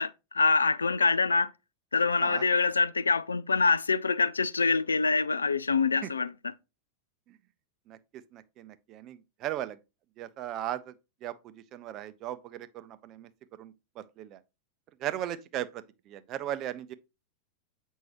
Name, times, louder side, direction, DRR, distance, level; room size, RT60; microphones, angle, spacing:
voice 1, 0.0-1.5 1.9-6.5, left 4 dB, 75° left, 0.3 m, -25 dB
voice 2, 8.3-9.8 10.2-10.9 11.2-11.3 11.7-13.3 13.6-14.4 15.0-16.9, right 12 dB, 35° right, 0.5 m, -37 dB
7.7 x 5.4 x 2.9 m
figure-of-eight pair, 90°, 0 cm